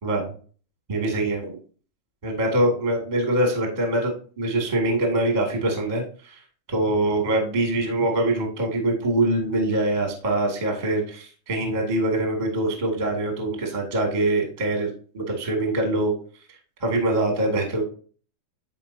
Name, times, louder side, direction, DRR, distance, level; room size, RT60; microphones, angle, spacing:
voice 1, 0.0-0.3 0.9-1.6 2.2-6.3 6.7-16.1 16.8-17.8, right 1 dB, 50° right, 1 dB, 0.5 m, -24 dB
13.0 x 4.7 x 2.8 m, 0.40 s
omnidirectional pair, 5.2 m